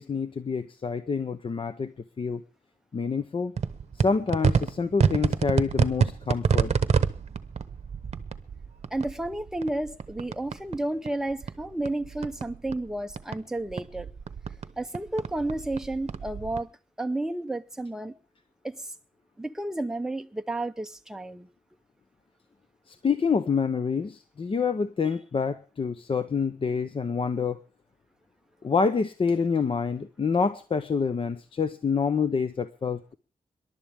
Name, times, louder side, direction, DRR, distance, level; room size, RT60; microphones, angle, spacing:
voice 1, 0.0-1.9 2.2-2.4 2.9-3.5 4.0-6.7 22.9-27.6 28.6-33.2, left 5 dB, 40° left, 0.7 m, -27 dB
sound 1, 3.6-10.8 11.1-13.4 13.7-16.6, right 6 dB, 50° right, 0.9 m, -28 dB
voice 2, 8.9-14.1 14.8-16.7 17.0-18.1 18.6-18.8 19.4-21.5, right 1 dB, 5° right, 0.7 m, -31 dB
26.0 x 11.5 x 3.5 m
wide cardioid pair, 135°, 14 cm